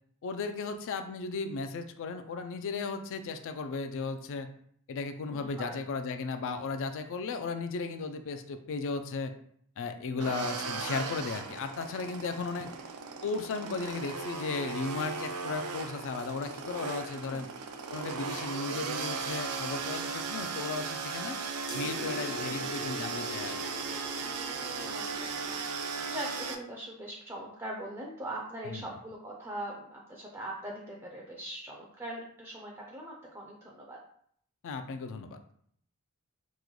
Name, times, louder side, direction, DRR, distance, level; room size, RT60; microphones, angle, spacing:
voice 1, 0.2-4.5 4.9-9.3 9.8-12.7 13.2-17.5 17.9-21.4 21.7-23.6 28.6-28.9 34.6-35.4, left 4 dB, 60° left, 8 dB, 0.4 m, -35 dB
voice 2, 5.3-5.8 10.1-10.3 12.6-12.7 17.3-17.5 24.2-25.6 26.1-34.0, right 1 dB, 15° right, -2 dB, 0.4 m, -42 dB
sound 1, 10.2-26.5, right 5 dB, 85° right, 0.4 m, -37 dB
sound 2, 21.7-26.6, left 1 dB, 85° left, 1.2 m, -43 dB
3.1 x 2.1 x 3.7 m, 0.65 s
head